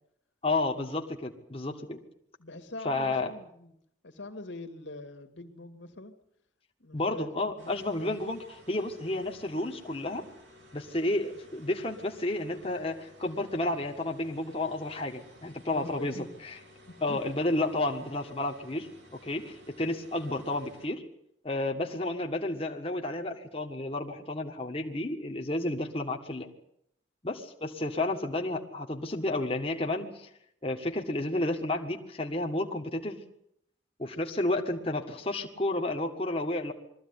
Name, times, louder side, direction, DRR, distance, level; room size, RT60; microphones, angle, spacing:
voice 1, 0.4-2.0 2.8-3.3 6.9-10.3 10.7-16.6 17.0-18.9 19.2-21.0 21.4-26.5 27.2-30.3 30.6-33.2 34.0-36.7, left 2 dB, 30° left, 2 dB, 1.8 m, -31 dB
voice 2, 2.4-3.7 4.0-6.1 6.8-7.3 7.6-8.1 15.7-16.3 16.9-17.2, left 2 dB, 75° left, 7 dB, 2.3 m, -43 dB
sound 1, 7.6-20.9, equal, 80° right, 6.5 m, -55 dB
22.0 x 14.5 x 9.9 m, 0.74 s
head